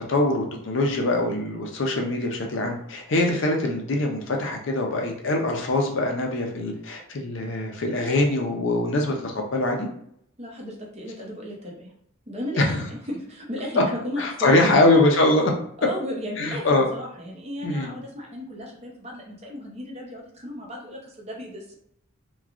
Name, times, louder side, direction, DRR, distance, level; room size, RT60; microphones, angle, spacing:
voice 1, 0.1-9.9 12.6-12.8 14.2-15.5 16.4-16.9 17.6-17.9, left 2 dB, 60° left, 2 dB, 0.5 m, -23 dB
voice 2, 10.4-11.9 12.3-14.7 15.8-21.7, equal, 30° right, -1 dB, 0.7 m, -35 dB
3.0 x 2.3 x 2.4 m, 0.69 s
head